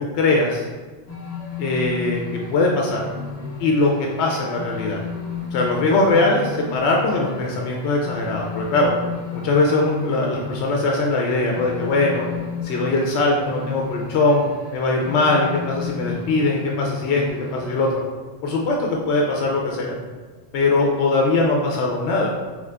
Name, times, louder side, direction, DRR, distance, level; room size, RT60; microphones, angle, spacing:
voice 1, 0.1-0.6 1.6-2.2 2.5-3.0 3.6-5.0 5.5-8.9 9.3-12.2 12.6-18.0 18.4-20.0 20.5-22.3, left 2 dB, 85° left, -1 dB, 0.9 m, -21 dB
sound 1, 1.1-17.9, left 6 dB, 40° left, 0.8 m, -33 dB
3.7 x 3.3 x 3.3 m, 1.3 s
omnidirectional pair, 1.1 m